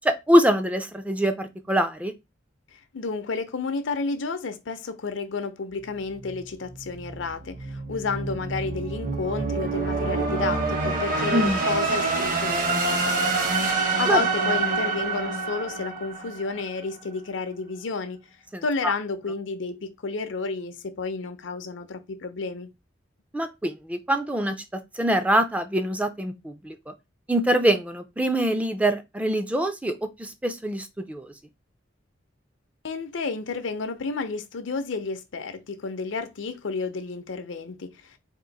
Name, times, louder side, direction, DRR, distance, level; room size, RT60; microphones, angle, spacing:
voice 1, 0.0-2.1 11.3-11.6 14.1-14.2 18.5-18.9 23.3-26.7 27.3-29.9 30.2-31.3, right 1 dB, 5° right, 0.4 m, -24 dB
voice 2, 2.7-13.4 13.7-18.2 18.6-22.7 32.8-38.2, left 4 dB, 75° left, 0.6 m, -31 dB
sound 1, 5.8-16.8, right 3 dB, 45° right, 0.9 m, -27 dB
3.6 x 2.5 x 4.0 m
head